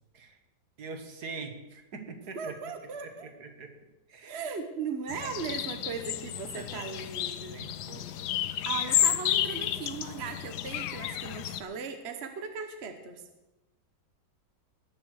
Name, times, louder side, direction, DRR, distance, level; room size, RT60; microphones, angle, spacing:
voice 1, 0.8-2.6 3.0-3.7 4.1-4.4 5.2-5.3 6.5-7.0 7.5-8.2, right 4 dB, 60° right, 6 dB, 2.0 m, -43 dB
voice 2, 2.3-3.3 4.2-7.6 8.6-13.2, right 5 dB, 40° right, 6 dB, 1.2 m, -38 dB
sound 1, 5.1-11.6, left 12 dB, 70° left, 1.2 m, -31 dB
19.0 x 6.9 x 6.4 m, 1.0 s
omnidirectional pair, 1.9 m